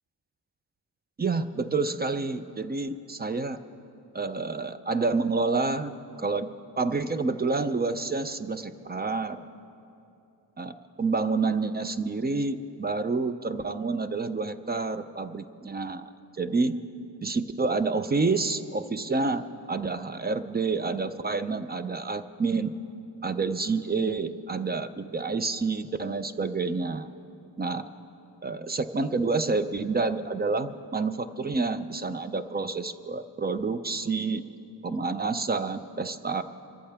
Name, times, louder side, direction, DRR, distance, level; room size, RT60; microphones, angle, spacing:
voice 1, 1.2-3.6 4.1-6.5 6.8-9.4 10.6-16.7 17.2-22.7 23.2-27.1 27.6-27.8 28.4-34.4 34.8-36.4, right 3 dB, 25° right, 11 dB, 0.3 m, -28 dB
25.0 x 14.0 x 3.4 m, 2.7 s
wide cardioid pair, 170°, 42 cm